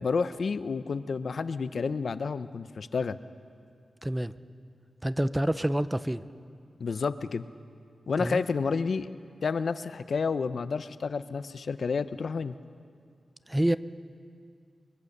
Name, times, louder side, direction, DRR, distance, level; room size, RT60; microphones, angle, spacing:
voice 1, 0.0-3.2 6.8-7.4 8.1-9.1 9.4-12.5, left 5 dB, 60° left, 13 dB, 0.7 m, -30 dB
voice 2, 4.0-4.3 5.0-6.2 8.2-8.4 13.5-13.8, right 1 dB, 10° right, 13 dB, 0.5 m, -27 dB
24.5 x 22.0 x 6.7 m, 2.3 s
wide cardioid pair, 130°, 0 cm